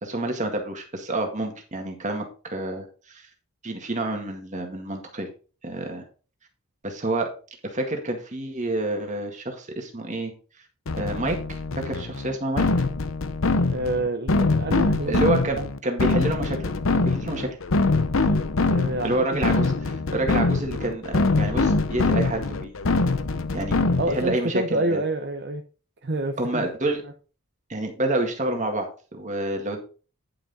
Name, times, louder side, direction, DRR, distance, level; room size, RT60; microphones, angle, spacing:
voice 1, 0.0-3.3 3.6-5.3 5.6-6.0 6.8-7.3 7.6-10.3 11.0-12.7 15.1-17.5 19.0-22.7 23.5-23.8 24.1-25.0 26.4-27.0 27.7-29.8, right 1 dB, 35° right, 3 dB, 1.9 m, -28 dB
sound 1, 10.9-24.4, left 3 dB, 65° left, 0.8 m, -24 dB
voice 2, 13.7-15.7 18.7-19.4 24.0-25.6 26.0-26.6, right 2 dB, 50° right, 6 dB, 0.8 m, -28 dB
10.0 x 5.8 x 4.2 m, 0.37 s
head